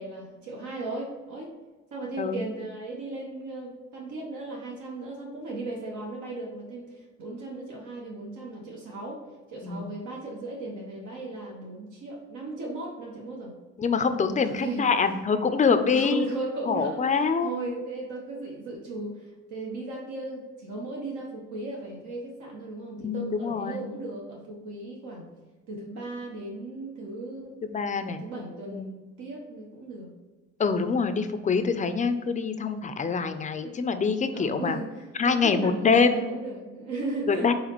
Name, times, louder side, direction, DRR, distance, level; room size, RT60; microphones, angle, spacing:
voice 1, 0.0-1.5 1.9-9.2 9.5-13.5 14.4-14.9 15.9-25.3 25.7-27.6 28.0-30.1 33.6-33.7 34.3-37.5, right 2 dB, 75° right, -2 dB, 1.0 m, -36 dB
voice 2, 13.8-16.3 16.7-17.5 23.0-23.9 27.6-28.2 28.7-28.8 30.6-34.8 35.2-36.2 37.3-37.5, left 5 dB, 25° left, 9 dB, 0.4 m, -25 dB
4.0 x 3.7 x 3.0 m, 1.2 s
cardioid pair, 90°, 30 cm